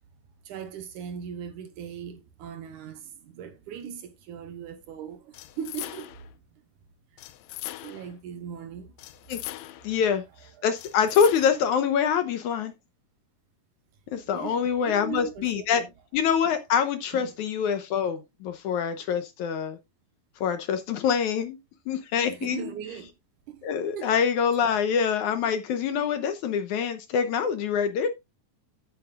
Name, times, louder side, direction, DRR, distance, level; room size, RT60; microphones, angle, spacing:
voice 1, 0.5-6.1 6.5-6.6 7.1-7.2 7.8-8.9 9.4-10.0 10.5-10.7 14.2-15.9 17.1-17.3 22.3-23.1 23.5-23.6 24.0-24.1, right 8 dB, 70° right, 2.4 m, -39 dB
sound 1, 5.3-6.3 7.2-8.2 9.0-10.0 10.8-11.7, left 16 dB, 90° left, 1.6 m, -40 dB
voice 2, 9.8-10.2 10.6-12.7 14.1-15.8 16.1-19.8 20.4-21.6 21.9-22.6 23.6-28.1, left 7 dB, 70° left, 2.1 m, -25 dB
11.0 x 9.1 x 2.4 m
omnidirectional pair, 4.0 m